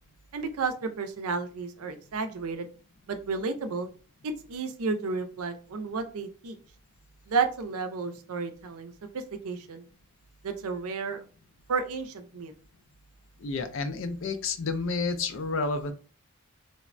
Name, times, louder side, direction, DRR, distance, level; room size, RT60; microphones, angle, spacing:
voice 1, 0.3-2.7 3.1-3.9 4.2-6.6 7.3-9.8 10.4-11.2 11.7-12.5, right 4 dB, 80° right, 8 dB, 0.5 m, -32 dB
voice 2, 13.4-15.9, left 3 dB, 55° left, 8 dB, 0.4 m, -30 dB
3.2 x 2.1 x 2.4 m, 0.36 s
head